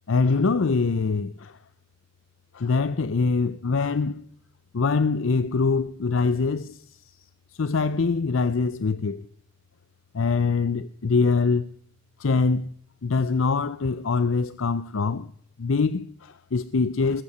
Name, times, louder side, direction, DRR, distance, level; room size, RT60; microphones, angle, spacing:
voice 1, 0.1-1.6 2.5-4.2 4.7-7.2 7.6-9.3 10.1-11.7 12.2-12.7 13.0-15.3 15.6-17.2, left 4 dB, 75° left, 0.5 m, -24 dB
20.5 x 8.4 x 6.9 m
head